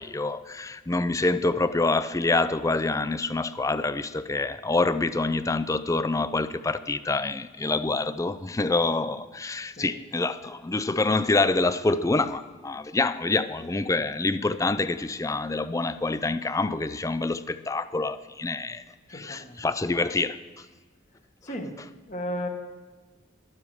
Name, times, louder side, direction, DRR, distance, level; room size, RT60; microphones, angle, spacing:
voice 1, 0.0-18.8 19.1-20.4, left 3 dB, 15° left, 0.4 m, -26 dB
voice 2, 19.1-19.6 21.4-21.7 22.1-22.5, equal, 40° left, 1.5 m, -34 dB
12.5 x 12.0 x 4.8 m
head